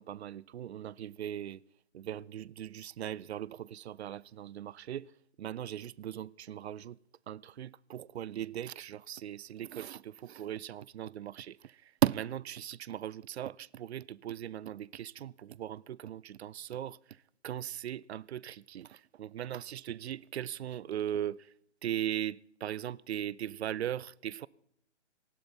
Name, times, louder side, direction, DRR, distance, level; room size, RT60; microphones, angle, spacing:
voice 1, 0.0-1.6 1.9-5.1 5.4-7.0 7.3-21.5 21.8-24.5, right 11 dB, 60° right, 0.5 m, -38 dB
19.5 x 16.0 x 4.2 m
figure-of-eight pair, 130°, 36 cm